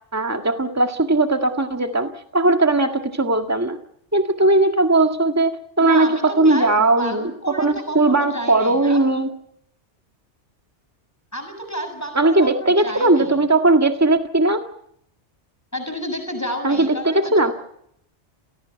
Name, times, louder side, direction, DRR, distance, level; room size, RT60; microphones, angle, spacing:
voice 1, 0.0-3.8 4.1-9.3 12.1-14.6 16.6-17.5, right 2 dB, 15° right, 5 dB, 1.8 m, -18 dB
voice 2, 5.8-9.0 11.3-13.4 15.7-17.3, equal, 15° left, 5 dB, 7.4 m, -31 dB
29.5 x 17.5 x 8.3 m, 0.73 s
omnidirectional pair, 1.2 m